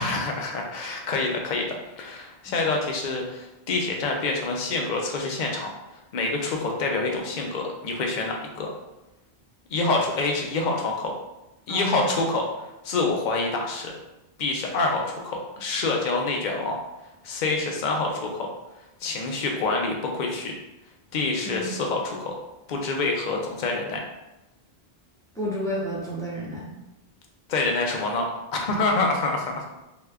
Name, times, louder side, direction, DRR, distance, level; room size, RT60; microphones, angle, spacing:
voice 1, 0.0-5.7 6.1-8.7 9.7-11.1 11.7-13.9 14.4-16.8 17.2-18.5 19.0-20.5 21.1-22.3 22.7-24.0 27.5-28.3 28.5-29.6, left 3 dB, 55° left, 1 dB, 0.6 m, -26 dB
voice 2, 11.7-12.0 21.5-21.7 25.4-26.7, equal, 5° left, -6 dB, 0.6 m, -31 dB
2.8 x 2.3 x 3.3 m, 0.96 s
omnidirectional pair, 1.0 m